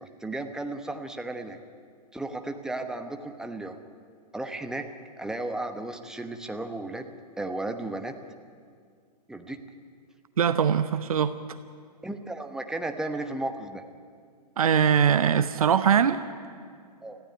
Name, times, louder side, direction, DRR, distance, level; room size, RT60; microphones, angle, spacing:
voice 1, 0.0-1.6 2.1-3.8 4.3-4.9 5.2-7.1 7.4-8.1 9.3-9.6 12.0-13.8 17.0-17.2, right 2 dB, 5° right, 6 dB, 1.0 m, -34 dB
voice 2, 10.4-11.4 14.6-16.2, right 8 dB, 55° right, 12 dB, 0.9 m, -22 dB
25.0 x 15.5 x 9.2 m, 2.1 s
figure-of-eight pair, 115°, 21 cm